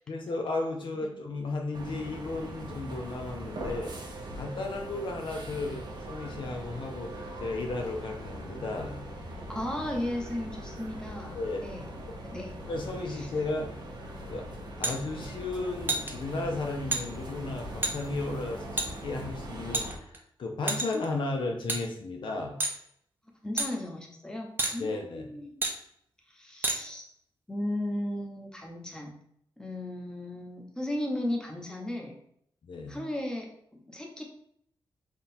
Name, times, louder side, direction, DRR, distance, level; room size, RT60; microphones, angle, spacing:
voice 1, 0.1-3.9 4.4-7.1 7.4-8.9 11.3-11.6 12.7-13.7 14.3-14.5 14.8-22.5 24.8-25.3 32.6-33.0, left 2 dB, 65° left, 2 dB, 0.6 m, -34 dB
sound 1, 1.7-20.0, right 1 dB, 50° right, 0.8 m, -41 dB
voice 2, 9.5-11.9 12.2-12.6 13.2-13.3 23.4-25.6 26.3-27.1 27.5-29.2 29.6-32.1 32.9-33.5 33.9-34.2, left 1 dB, 10° left, 0 dB, 0.9 m, -35 dB
sound 2, 14.8-15.0 15.9-16.1 16.9-17.0 17.8-17.9 18.8-18.9 19.7-20.2 20.7-21.0 21.7-21.8 22.6-22.8 23.6-23.7 24.6-24.7 25.6-25.7 26.6-26.8, right 2 dB, 25° right, 0.6 m, -28 dB
3.7 x 2.4 x 4.2 m, 0.70 s
wide cardioid pair, 95°, 9 cm